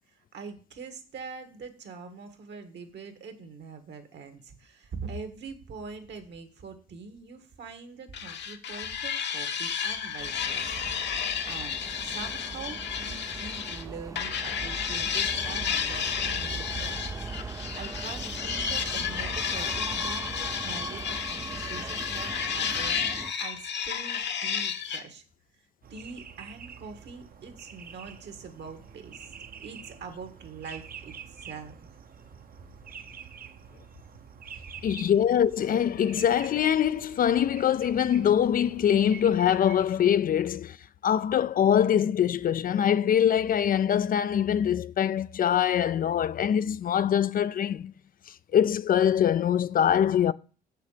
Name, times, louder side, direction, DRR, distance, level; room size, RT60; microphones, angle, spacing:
voice 1, 0.1-25.2 25.5-29.3 29.6-31.8, right 5 dB, 65° right, 1.7 m, -43 dB
sound 1, 8.1-13.8 14.2-25.0, left 7 dB, 65° left, 1.0 m, -32 dB
Subway metro underground, 10.2-23.3, right 4 dB, 15° right, 0.4 m, -39 dB
sound 2, 25.8-39.9, right 7 dB, 45° right, 0.9 m, -47 dB
voice 2, 34.8-40.8 41.0-47.9 48.3-50.3, left 9 dB, 45° left, 0.4 m, -23 dB
7.2 x 6.7 x 5.0 m
cardioid pair, 90°, 20 cm